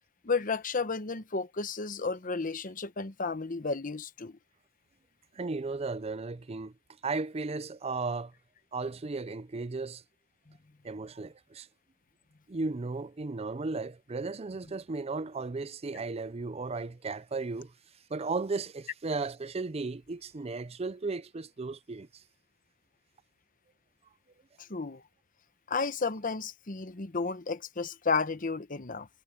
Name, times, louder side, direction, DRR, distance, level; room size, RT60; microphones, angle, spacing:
voice 1, 0.2-4.4 24.7-25.0 25.7-29.1, left 4 dB, 45° left, 1.0 m, -32 dB
voice 2, 5.3-6.7 7.0-8.3 8.7-10.0 10.8-11.7 12.5-17.7 18.1-22.1, right 3 dB, 35° right, 0.5 m, -35 dB
head